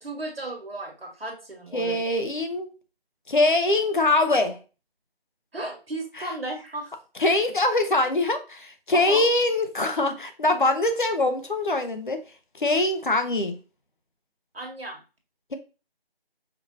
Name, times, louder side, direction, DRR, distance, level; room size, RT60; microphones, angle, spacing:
voice 1, 0.0-2.0 5.5-6.9 8.9-9.3 14.5-15.0, right 2 dB, 70° right, 1.6 m, -34 dB
voice 2, 1.7-2.7 3.3-4.6 7.2-12.2 12.6-13.6, left 2 dB, 55° left, 0.7 m, -23 dB
5.2 x 2.9 x 2.6 m
figure-of-eight pair, 165°, 31 cm